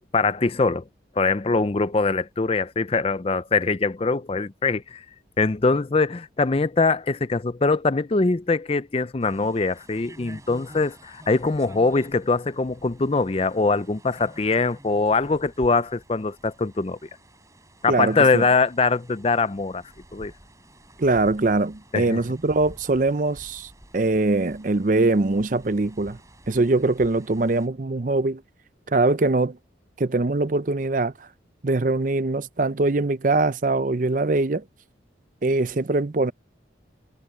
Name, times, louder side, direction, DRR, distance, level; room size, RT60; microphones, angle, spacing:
voice 1, 0.1-0.8 1.2-5.0 5.4-17.0 17.8-19.8 20.1-20.3 21.9-22.2, left 3 dB, 30° left, 0.5 m, -22 dB
sound 1, 9.2-27.7, right 1 dB, 15° right, 5.8 m, -50 dB
voice 2, 17.9-18.4 21.0-26.2 26.5-28.4 28.9-29.6 30.0-31.1 31.6-34.6 35.4-36.3, right 2 dB, 45° right, 0.6 m, -22 dB
head